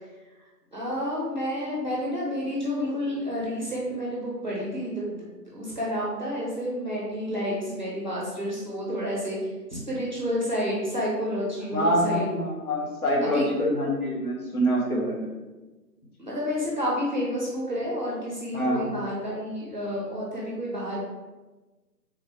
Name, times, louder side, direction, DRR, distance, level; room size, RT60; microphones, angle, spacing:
voice 1, 0.7-5.2 5.5-9.4 9.7-12.3 13.2-13.5 16.2-21.0, equal, 30° right, -5 dB, 0.7 m, -30 dB
voice 2, 11.7-15.3 18.5-18.8, equal, 60° left, -2 dB, 1.2 m, -25 dB
3.6 x 3.0 x 3.2 m, 1.2 s
figure-of-eight pair, 160°, 50 cm